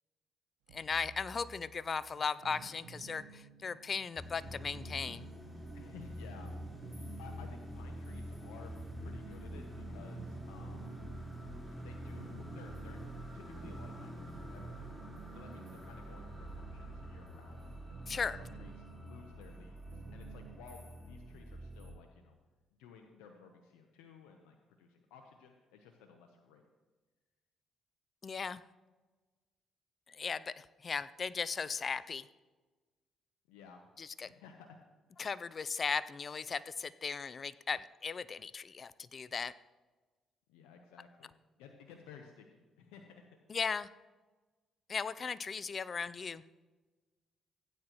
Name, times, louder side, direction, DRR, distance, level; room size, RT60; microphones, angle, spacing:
voice 1, 0.7-5.3 18.1-18.4 28.2-28.6 30.1-32.3 34.0-34.3 35.2-39.5 43.5-43.9 44.9-46.4, left 5 dB, 45° left, 16 dB, 0.5 m, -37 dB
sound 1, 0.7-20.6, right 5 dB, 85° right, 1.1 m, -54 dB
sound 2, 4.1-21.9, right 1 dB, 5° left, 4.2 m, -46 dB
voice 2, 5.7-10.9 11.8-13.1 13.3-15.0 15.3-17.7 18.1-22.4 22.8-26.6 33.5-33.8 34.2-34.8 40.5-43.4, left 6 dB, 90° left, 4 dB, 0.9 m, -55 dB
16.0 x 9.5 x 3.0 m, 1.3 s
supercardioid pair, 60°, 0 cm